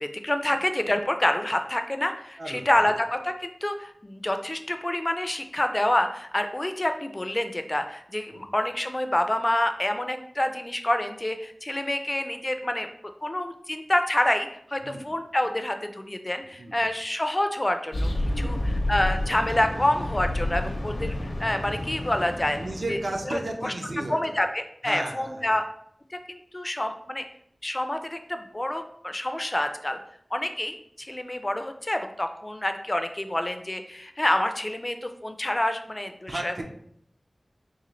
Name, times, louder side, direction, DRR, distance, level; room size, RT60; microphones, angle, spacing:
voice 1, 0.0-12.9 13.2-18.1 18.4-22.6 22.9-23.0 23.3-23.7 24.1-25.6 26.1-27.2 27.6-30.0 30.3-36.6, left 1 dB, 30° left, 7 dB, 0.3 m, -27 dB
voice 2, 2.4-2.7 8.3-8.5 14.8-15.1 16.6-16.8 18.3-18.9 22.6-24.4 24.8-25.6 36.3-36.6, right 2 dB, 70° right, 2 dB, 0.6 m, -34 dB
sound 1, 17.9-23.3, left 1 dB, 75° left, 0.6 m, -30 dB
3.9 x 2.5 x 3.0 m, 0.68 s
wide cardioid pair, 70°, 0 cm